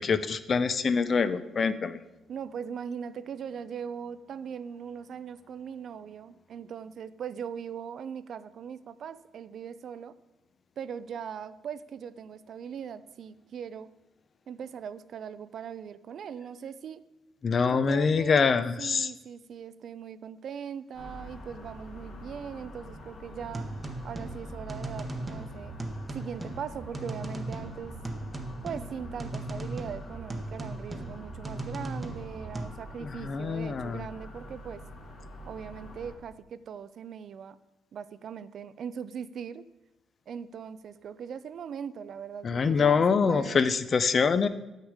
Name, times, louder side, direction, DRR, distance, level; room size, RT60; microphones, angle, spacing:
voice 1, 0.0-2.0 17.4-19.1 33.0-34.1 42.4-44.5, left 5 dB, 45° left, 13 dB, 0.5 m, -25 dB
voice 2, 2.3-10.2 10.8-13.9 14.5-17.0 17.7-18.5 18.8-23.7 24.0-25.7 26.1-27.9 28.6-34.8 35.5-37.6 37.9-39.7 40.3-43.7, right 7 dB, 60° right, 15 dB, 0.4 m, -40 dB
sound 1, 20.9-36.1, left 1 dB, 65° left, 1.9 m, -46 dB
sound 2, 23.4-32.7, right 2 dB, 25° right, 0.9 m, -38 dB
8.0 x 6.4 x 4.9 m, 0.97 s
cardioid pair, 90°, 0 cm